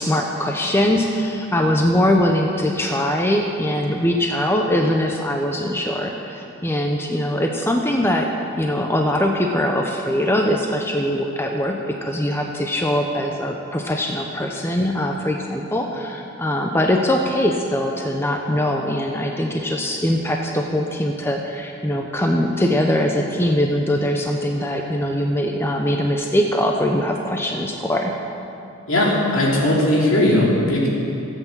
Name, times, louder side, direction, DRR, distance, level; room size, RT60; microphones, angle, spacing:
voice 1, 0.0-8.3 8.6-28.1, left 1 dB, 10° left, 2 dB, 0.6 m, -22 dB
voice 2, 28.9-30.9, left 1 dB, 65° left, -4 dB, 3.1 m, -18 dB
14.5 x 8.3 x 7.3 m, 2.8 s
head